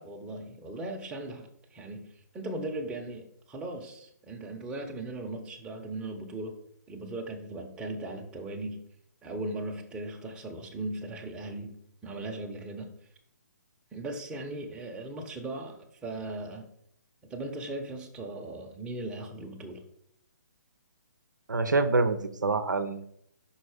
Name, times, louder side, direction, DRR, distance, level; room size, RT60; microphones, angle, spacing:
voice 1, 0.0-2.1 2.3-6.6 6.9-8.8 9.2-11.7 12.0-12.9 13.9-16.7 17.3-19.8, right 2 dB, 10° right, 1 dB, 0.8 m, -38 dB
voice 2, 21.5-23.0, right 3 dB, 85° right, 9 dB, 0.6 m, -26 dB
5.5 x 4.2 x 4.9 m, 0.71 s
figure-of-eight pair, 140°, 10 cm